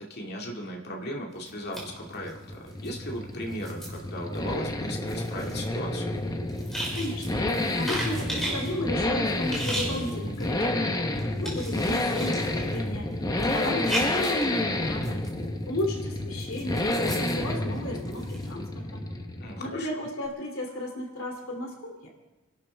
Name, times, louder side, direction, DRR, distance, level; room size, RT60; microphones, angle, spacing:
voice 1, 0.0-6.2 19.4-20.1, equal, 50° left, 0 dB, 2.2 m, -37 dB
sound 1, 1.3-3.0 3.3-8.8 9.3-10.7 11.1-15.4 15.8-18.5, right 1 dB, ahead, 5.3 m, -37 dB
sound 2, 1.8-19.8, left 1 dB, 20° left, 0.9 m, -30 dB
voice 2, 6.9-7.4 7.8-10.9 11.4-13.1 13.5-15.2 15.7-19.0 19.6-22.1, left 1 dB, 70° left, 1 dB, 2.7 m, -34 dB
28.0 x 12.0 x 3.4 m, 1.1 s
head